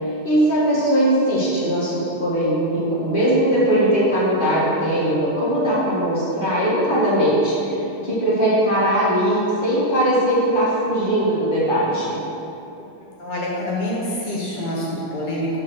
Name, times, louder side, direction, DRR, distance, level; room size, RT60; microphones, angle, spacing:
voice 1, 0.2-7.7 8.0-12.2, right 1 dB, 25° left, -7 dB, 1.8 m, -20 dB
voice 2, 13.2-15.6, left 1 dB, 50° left, -5 dB, 0.6 m, -26 dB
6.2 x 4.5 x 6.4 m, 2.8 s
omnidirectional pair, 2.1 m